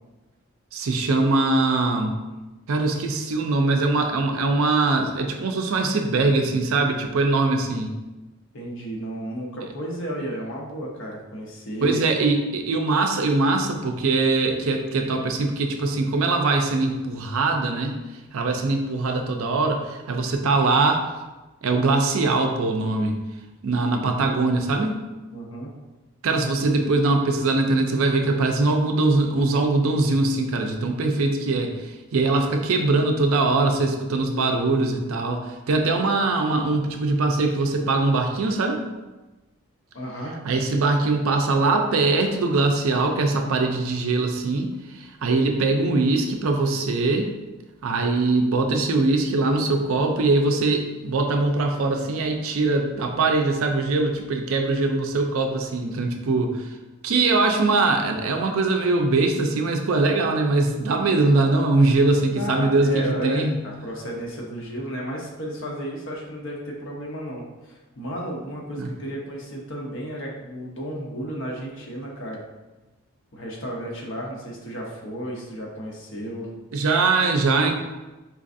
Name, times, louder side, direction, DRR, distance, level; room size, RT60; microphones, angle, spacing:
voice 1, 0.7-2.2 2.7-7.9 11.8-18.0 18.3-21.0 21.6-23.2 23.6-25.0 26.2-38.8 40.4-44.7 45.0-47.3 47.8-56.7 57.0-63.6 68.8-68.9 76.7-77.7, right 3 dB, 65° right, 4 dB, 0.4 m, -22 dB
voice 2, 8.5-12.0 25.3-25.7 39.9-40.4 62.3-72.4 73.3-76.5, equal, 55° left, -1 dB, 0.7 m, -33 dB
4.6 x 2.5 x 2.5 m, 1.1 s
head